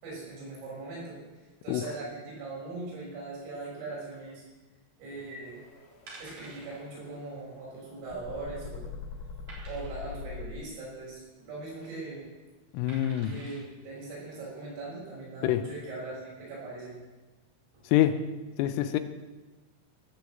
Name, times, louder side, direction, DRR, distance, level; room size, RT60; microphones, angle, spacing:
voice 1, 0.0-1.2 1.6-4.4 5.0-5.6 6.2-8.9 9.6-12.2 13.2-17.0, right 3 dB, 70° right, -5 dB, 8.5 m, -40 dB
sound 1, 5.4-10.5, left 5 dB, 55° left, 4.2 m, -43 dB
sound 2, 6.1-6.8 7.1-7.3 7.6-7.7 8.2-8.7 9.5-10.2 11.5-11.9 12.9-13.6 14.2-14.3, right 2 dB, 40° right, 4.9 m, -49 dB
voice 2, 12.7-13.3 15.4-15.6 17.9-18.2 18.6-19.0, left 13 dB, 80° left, 10 dB, 3.3 m, -25 dB
18.5 x 6.8 x 7.8 m, 1.2 s
omnidirectional pair, 5.9 m